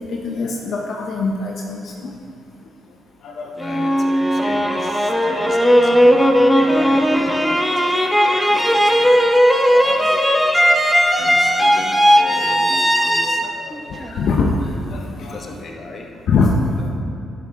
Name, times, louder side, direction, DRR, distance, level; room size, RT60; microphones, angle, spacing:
voice 1, 0.0-2.1 3.2-3.5 8.4-8.6 9.0-9.9 10.1-10.2 12.3-12.5 13.9-15.4 16.3-16.6, left 4 dB, 65° left, -1 dB, 0.7 m, -23 dB
voice 2, 3.5-10.2 11.1-14.0 15.2-16.1 16.8-16.9, left 2 dB, 40° left, 1 dB, 1.1 m, -35 dB
sound 1, 3.6-14.6, equal, ahead, 0.6 m, -16 dB
11.0 x 5.9 x 3.4 m, 2.8 s
cardioid pair, 90°, 0 cm